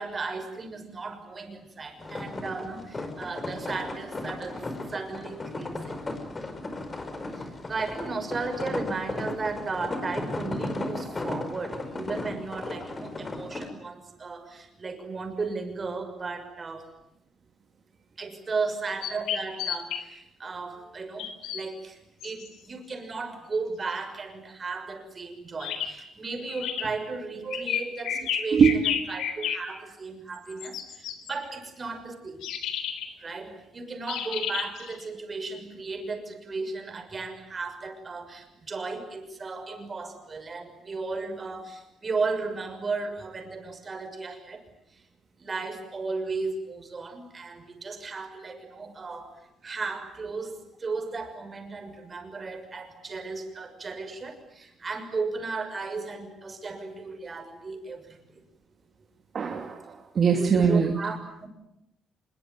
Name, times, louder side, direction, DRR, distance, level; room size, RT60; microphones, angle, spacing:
voice 1, 0.0-6.0 7.3-16.9 18.2-32.4 33.2-44.6 44.9-45.0 45.4-58.4 60.4-61.5, right 4 dB, 35° right, 7 dB, 6.3 m, -35 dB
sound 1, 2.0-13.7, left 2 dB, 25° left, 4.9 m, -35 dB
sound 2, 19.0-20.0 21.2-21.6 22.2-22.5 25.6-25.9 26.5-26.9 27.5-29.6 30.3-31.3 32.4-33.1 34.1-35.0, left 9 dB, 85° left, 3.6 m, -31 dB
voice 2, 28.5-28.8 59.3-60.9, right 6 dB, 50° right, 2 dB, 3.0 m, -22 dB
25.5 x 22.5 x 9.5 m, 0.83 s
cardioid pair, 90°, 0 cm